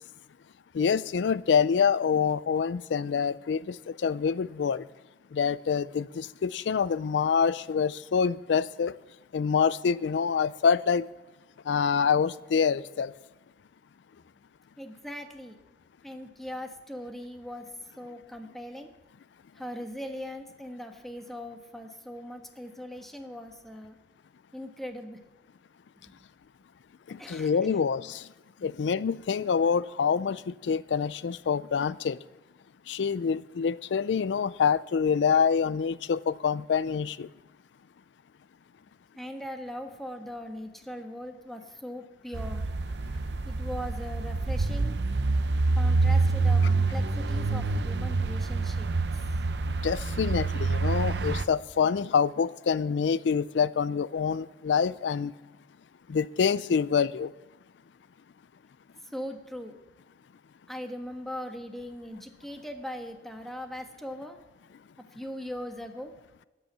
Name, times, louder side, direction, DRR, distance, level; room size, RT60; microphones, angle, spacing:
voice 1, 0.7-4.8 5.3-8.9 9.3-11.1 11.7-13.1 27.1-28.3 28.6-32.2 32.9-37.3 49.7-55.3 56.1-57.3, left 6 dB, 90° left, 18 dB, 0.4 m, -26 dB
voice 2, 14.8-15.6 16.0-17.7 18.0-18.9 19.5-24.0 24.5-25.3 26.0-26.2 27.2-27.8 28.6-28.7 39.2-42.6 43.4-45.0 45.8-48.9 59.0-59.8 60.7-64.4 65.1-66.1, equal, ahead, 4 dB, 1.4 m, -40 dB
sound 1, 42.3-51.4, right 3 dB, 75° right, 0.6 m, -27 dB
13.0 x 9.9 x 7.4 m, 1.1 s
head